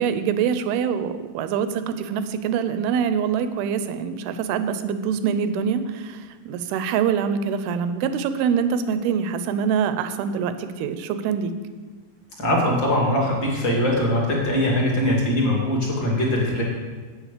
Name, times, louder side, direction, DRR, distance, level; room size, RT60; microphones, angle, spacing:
voice 1, 0.0-11.5, right 7 dB, 80° right, 11 dB, 2.5 m, -24 dB
voice 2, 12.4-16.6, left 1 dB, 35° left, -2 dB, 2.4 m, -21 dB
9.1 x 8.9 x 6.7 m, 1.4 s
omnidirectional pair, 4.5 m